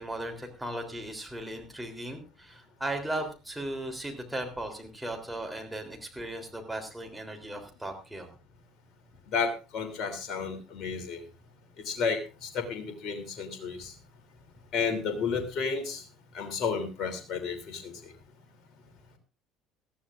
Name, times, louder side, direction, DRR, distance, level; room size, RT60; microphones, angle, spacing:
voice 1, 0.0-8.3, right 1 dB, 5° right, 3 dB, 3.4 m, -37 dB
voice 2, 9.3-11.2 11.8-13.9 14.7-16.0 16.3-17.9, left 5 dB, 45° left, 7 dB, 3.0 m, -32 dB
19.0 x 14.5 x 2.5 m, 0.30 s
figure-of-eight pair, 60°, 0 cm